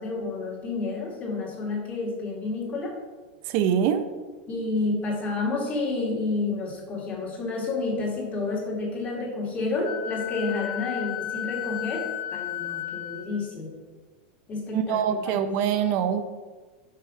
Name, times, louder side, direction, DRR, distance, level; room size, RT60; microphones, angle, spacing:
voice 1, 0.0-3.0 4.5-12.0 12.3-13.7 14.5-15.4, left 3 dB, 25° left, -2 dB, 1.8 m, -30 dB
voice 2, 3.4-4.1 14.7-16.2, right 8 dB, 50° right, 8 dB, 0.5 m, -24 dB
Wind instrument woodwind instrument, 9.8-13.3, left 14 dB, 40° left, 0.7 m, -33 dB
5.5 x 5.0 x 5.0 m, 1.4 s
supercardioid pair, 140°, 6 cm